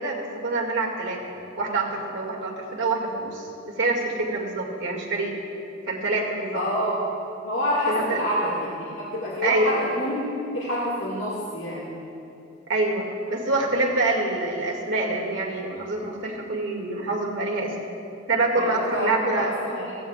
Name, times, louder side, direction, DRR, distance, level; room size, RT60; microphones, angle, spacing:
voice 1, 0.0-3.5 3.8-5.3 5.9-6.6 7.9-8.2 9.4-9.8 12.7-17.7 18.3-19.5, right 2 dB, 70° right, -1 dB, 2.1 m, -26 dB
voice 2, 6.5-7.0 7.4-12.0 18.5-20.0, equal, 70° left, -7 dB, 1.9 m, -27 dB
16.0 x 15.5 x 2.4 m, 2.8 s
head